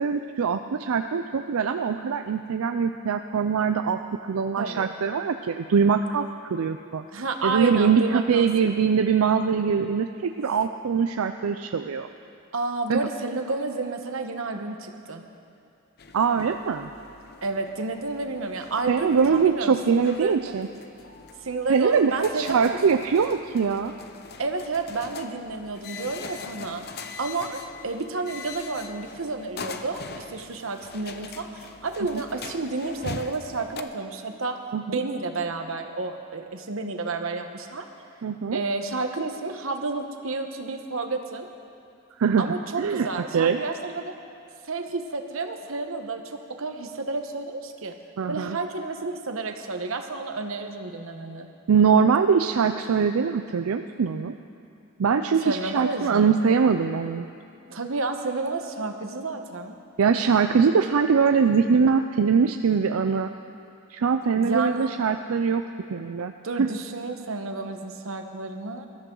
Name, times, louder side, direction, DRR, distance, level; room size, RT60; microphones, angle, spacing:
voice 1, 0.0-7.0 7.4-12.1 12.9-13.0 16.1-16.9 18.9-20.7 21.7-23.9 32.1-32.2 34.7-35.0 38.2-38.6 42.2-43.1 43.3-43.6 48.2-48.6 51.7-54.3 55.0-57.3 60.0-63.3 63.9-65.6 65.9-66.7, right 6 dB, 90° right, 7 dB, 0.4 m, -22 dB
voice 2, 4.6-4.9 7.1-8.8 12.5-15.2 17.4-20.4 21.4-22.8 24.4-34.6 34.9-37.8 38.5-41.5 42.4-44.1 44.7-47.9 48.3-51.5 55.4-56.4 57.7-59.8 64.3-64.9 66.4-68.9, right 3 dB, 70° right, 5 dB, 1.1 m, -31 dB
sound 1, 16.0-33.8, left 4 dB, 50° left, 0.7 m, -42 dB
21.5 x 13.5 x 3.9 m, 2.5 s
head